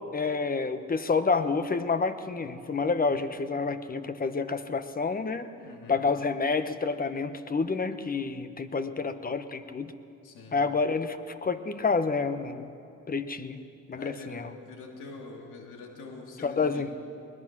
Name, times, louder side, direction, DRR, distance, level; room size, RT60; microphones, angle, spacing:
voice 1, 0.1-5.5 5.9-9.9 10.5-12.7 13.1-13.6 13.9-14.5 16.4-16.9, left 4 dB, 30° left, 11 dB, 1.1 m, -29 dB
voice 2, 5.6-6.1 10.2-10.6 14.0-17.0, left 3 dB, 85° left, 2 dB, 2.7 m, -44 dB
22.0 x 20.0 x 6.1 m, 2.5 s
cardioid pair, 90°, 30 cm